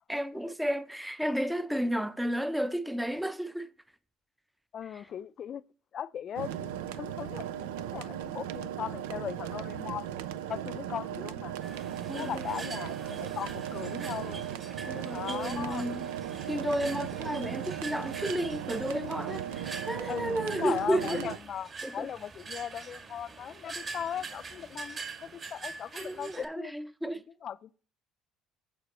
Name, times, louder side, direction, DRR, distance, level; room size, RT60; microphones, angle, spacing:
voice 1, 0.1-3.7 4.9-5.0 12.1-12.4 14.9-16.0 16.5-21.2 21.8-22.1 26.0-27.2, equal, 5° right, 0.6 m, -32 dB
voice 2, 4.7-5.6 5.9-10.1 10.5-11.6 12.2-14.5 15.1-16.0 20.1-26.7 27.1-27.8, left 9 dB, 50° left, 0.4 m, -38 dB
sound 1, 6.4-21.4, right 10 dB, 85° right, 0.4 m, -37 dB
sound 2, 11.6-26.5, right 4 dB, 40° right, 2.1 m, -44 dB
14.5 x 4.9 x 3.0 m
supercardioid pair, 75°, 0 cm